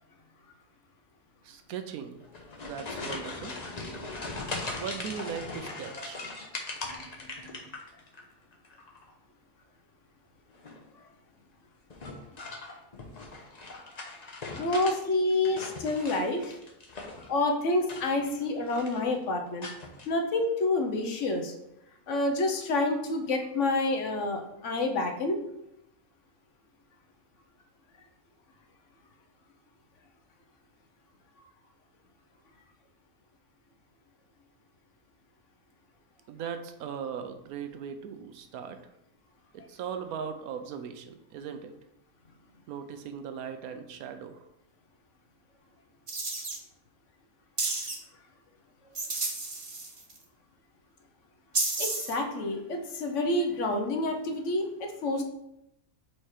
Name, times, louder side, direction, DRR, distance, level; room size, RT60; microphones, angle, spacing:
voice 1, 1.4-2.2 2.6-3.6 4.7-6.2 36.3-38.8 39.5-41.7 42.7-44.4, right 7 dB, 85° right, 7 dB, 1.1 m, -38 dB
sound 1, 2.2-8.2 8.5-9.1 10.5-10.9 11.9-15.0 15.3-17.3 17.8-18.4 18.7-19.1 19.6-20.1, left 3 dB, 35° left, 0.8 m, -40 dB
voice 2, 14.6-16.6 17.3-19.7 20.1-21.5 22.1-25.4 51.8-55.2, left 2 dB, 65° left, 4 dB, 1.1 m, -28 dB
sound 2, 46.1-46.6 47.6-48.0 48.9-50.2 51.5-52.2, right 3 dB, 30° right, 0.8 m, -31 dB
4.6 x 4.4 x 4.8 m, 0.83 s
omnidirectional pair, 1.5 m